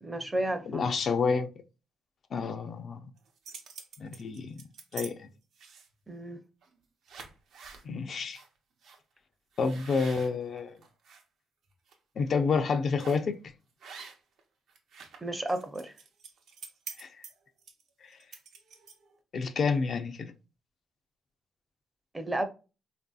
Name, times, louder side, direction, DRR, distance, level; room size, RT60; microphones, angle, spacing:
voice 1, 0.0-0.8 6.1-6.4 15.2-15.9 22.1-22.4, right 1 dB, 15° right, 0.5 m, -32 dB
voice 2, 0.7-1.5 2.3-3.1 4.0-4.6 4.9-5.3 7.9-8.4 9.6-10.8 12.2-13.4 17.0-17.1 18.0-18.1 19.3-20.3, left 5 dB, 50° left, 0.4 m, -29 dB
sound 1, 3.2-5.1 5.5-6.0 6.6-6.8 7.0-7.8 8.3-8.5 8.8-9.0 9.5-11.2 11.7-11.9 13.0-13.3 13.8-14.4 14.7-19.2, right 5 dB, 75° right, 0.6 m, -47 dB
3.2 x 2.6 x 2.3 m
cardioid pair, 90°, 0 cm